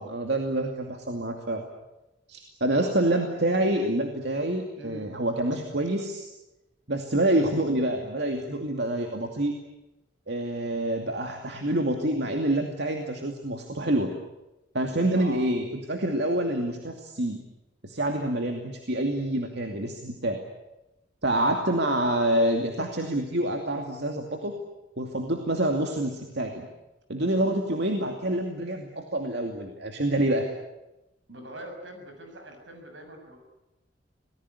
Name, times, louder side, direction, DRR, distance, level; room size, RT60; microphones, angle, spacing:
voice 1, 0.0-1.6 2.3-6.2 6.9-9.6 10.3-14.1 14.7-17.4 17.8-20.4 21.2-24.6 25.0-26.7 27.1-30.4, right 1 dB, 65° right, 3 dB, 2.6 m, -27 dB
voice 2, 2.7-3.3 4.8-5.1 15.1-15.4 21.3-21.8 31.3-33.4, right 1 dB, 85° right, 4 dB, 7.2 m, -42 dB
26.5 x 19.5 x 9.8 m, 0.97 s
head